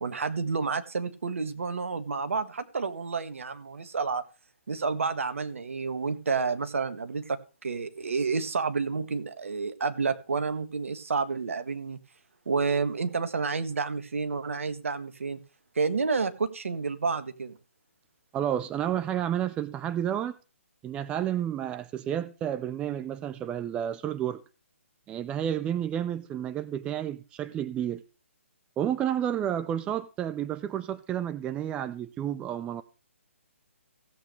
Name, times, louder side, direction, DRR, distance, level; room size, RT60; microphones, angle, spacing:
voice 1, 0.0-4.2 4.7-12.0 12.4-15.4 15.7-17.6, right 4 dB, 70° right, 1.6 m, -30 dB
voice 2, 18.3-20.3 20.8-24.4 25.1-28.0 28.8-32.8, right 10 dB, 15° right, 0.5 m, -31 dB
16.5 x 8.2 x 3.3 m
figure-of-eight pair, 140°, 7 cm